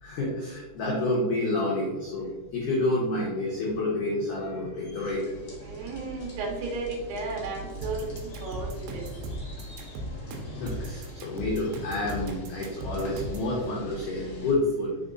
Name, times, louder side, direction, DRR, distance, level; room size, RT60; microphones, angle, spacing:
voice 1, 0.0-5.3 8.4-8.6 9.3-10.1 10.3-15.0, left 2 dB, 90° left, -4 dB, 1.7 m, -29 dB
sound 1, 5.0-14.5, equal, 70° left, 1.2 m, -44 dB
voice 2, 5.6-8.7 8.9-9.0, right 3 dB, 70° right, -2 dB, 3.0 m, -34 dB
sound 2, 7.8-13.5, right 1 dB, 85° right, 3.0 m, -37 dB
6.6 x 3.6 x 3.9 m, 1.2 s
omnidirectional pair, 5.2 m